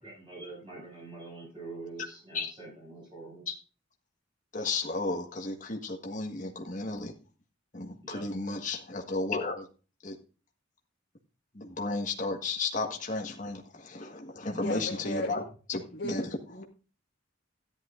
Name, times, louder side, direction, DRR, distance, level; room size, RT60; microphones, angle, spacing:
voice 1, 0.0-3.5 8.0-8.3, right 3 dB, 25° right, -3 dB, 7.3 m, -45 dB
voice 2, 4.5-7.1 7.7-9.7 10.0-10.1 11.5-15.4 15.7-16.4, left 3 dB, 40° left, 2 dB, 1.6 m, -33 dB
voice 3, 14.5-15.3 15.9-16.6, left 1 dB, 55° left, -2 dB, 1.7 m, -36 dB
13.5 x 10.5 x 2.5 m, 0.35 s
head